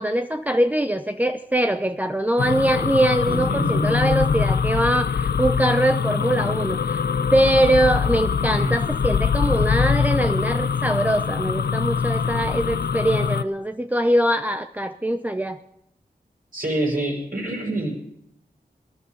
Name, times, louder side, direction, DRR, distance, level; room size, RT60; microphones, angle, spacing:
voice 1, 0.0-7.0 7.3-15.6, right 1 dB, 10° right, 8 dB, 0.7 m, -22 dB
sound 1, 2.4-13.4, left 6 dB, 70° left, 0.6 m, -23 dB
voice 2, 3.3-3.9 8.5-8.8 16.5-17.9, right 1 dB, 55° right, -4 dB, 6.1 m, -26 dB
19.5 x 11.0 x 5.3 m, 0.79 s
cardioid pair, 45°, 17 cm